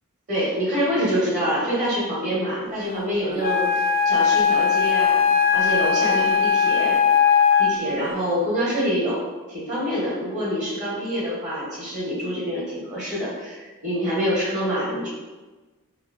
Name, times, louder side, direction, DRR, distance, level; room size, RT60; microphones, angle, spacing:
voice 1, 0.3-5.2 5.5-7.0 7.6-9.2 9.5-15.1, equal, 35° right, -8 dB, 1.1 m, -26 dB
Wind instrument woodwind instrument, 3.4-8.0, left 7 dB, 45° left, 0.3 m, -19 dB
3.0 x 2.8 x 2.5 m, 1.3 s
head